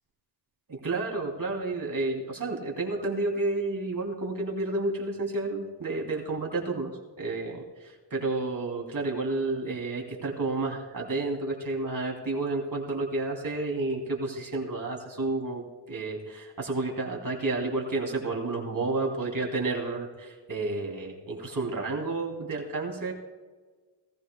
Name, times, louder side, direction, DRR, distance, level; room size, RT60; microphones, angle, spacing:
voice 1, 0.7-23.1, right 2 dB, 45° right, 0 dB, 3.0 m, -31 dB
17.5 x 15.0 x 2.3 m, 1.4 s
cardioid pair, 70°, 44 cm